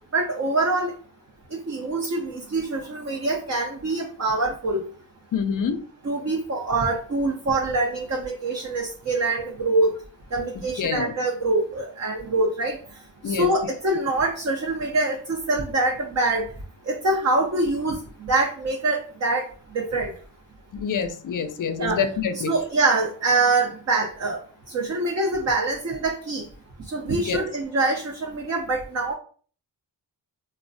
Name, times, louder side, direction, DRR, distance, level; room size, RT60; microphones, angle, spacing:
voice 1, 0.1-0.9 1.5-4.8 6.0-10.0 10.3-20.2 21.8-22.0 22.3-26.5 26.8-29.1, right 2 dB, 35° right, -1 dB, 0.6 m, -25 dB
voice 2, 5.3-5.8 10.8-11.1 13.2-13.5 20.7-22.5 27.3-27.4, left 6 dB, 45° left, 10 dB, 0.5 m, -26 dB
3.1 x 2.2 x 2.6 m, 0.43 s
cardioid pair, 50°, 44 cm